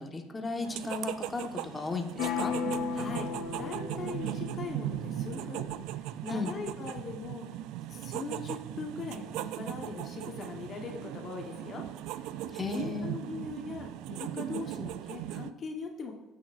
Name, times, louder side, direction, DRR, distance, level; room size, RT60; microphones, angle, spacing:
voice 1, 0.0-2.5 6.3-6.5 12.5-13.1, left 3 dB, 25° left, 3 dB, 1.2 m, -35 dB
sound 1, 0.6-15.5, right 13 dB, 75° right, 0.3 m, -38 dB
sound 2, 2.2-6.0, left 5 dB, 70° left, 0.9 m, -36 dB
voice 2, 2.9-3.3 3.6-5.7 6.0-7.5 7.9-11.9 12.7-16.2, left 4 dB, 50° left, 2 dB, 1.1 m, -40 dB
14.0 x 6.3 x 2.5 m, 1.1 s
supercardioid pair, 70°, 0 cm